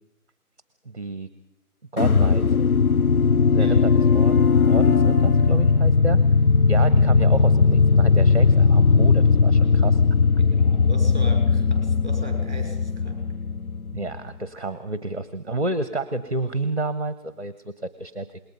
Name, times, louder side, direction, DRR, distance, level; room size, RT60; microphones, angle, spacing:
voice 1, 0.8-1.3 1.9-2.6 3.5-4.4 4.7-6.2 6.7-10.0 13.9-18.4, right 2 dB, 45° right, 13 dB, 1.1 m, -30 dB
sound 1, 2.0-14.2, left 5 dB, 65° left, 0.7 m, -18 dB
voice 2, 10.4-13.2, right 2 dB, 30° right, 2 dB, 5.7 m, -39 dB
27.0 x 21.5 x 5.3 m, 0.86 s
figure-of-eight pair, 175°, 46 cm